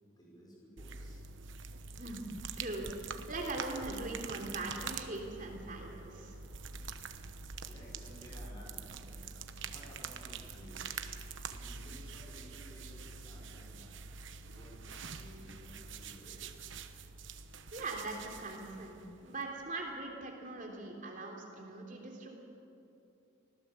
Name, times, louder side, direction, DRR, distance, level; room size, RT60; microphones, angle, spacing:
voice 1, 0.2-1.2 6.5-10.9 11.5-16.4, equal, 20° left, -4 dB, 5.6 m, -56 dB
sound 1, 0.8-19.7, right 5 dB, 65° right, 1.1 m, -45 dB
voice 2, 2.0-2.3 2.6-6.4 17.7-22.4, right 2 dB, 40° right, 1 dB, 3.4 m, -41 dB
24.5 x 17.5 x 8.0 m, 2.8 s
head